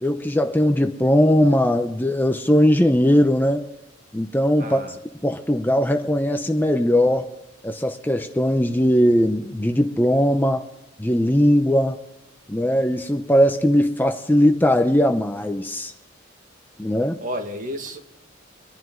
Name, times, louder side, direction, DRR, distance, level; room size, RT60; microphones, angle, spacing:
voice 1, 0.0-3.6 4.1-4.8 5.2-7.3 7.6-10.6 11.0-12.0 12.5-15.9 16.8-17.2, equal, 10° left, 0.7 m, -19 dB
voice 2, 4.6-5.0 17.2-18.0, equal, 40° right, 1.9 m, -31 dB
25.0 x 11.0 x 3.8 m
head